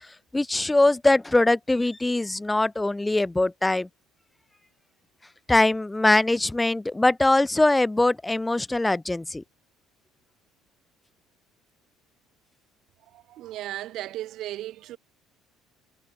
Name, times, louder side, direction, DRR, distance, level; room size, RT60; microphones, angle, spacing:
voice 1, 0.3-3.9 5.5-9.4, left 2 dB, 10° left, 0.4 m, -22 dB
voice 2, 13.1-15.0, right 14 dB, 60° right, 0.6 m, -36 dB
cardioid pair, 135°, 0 cm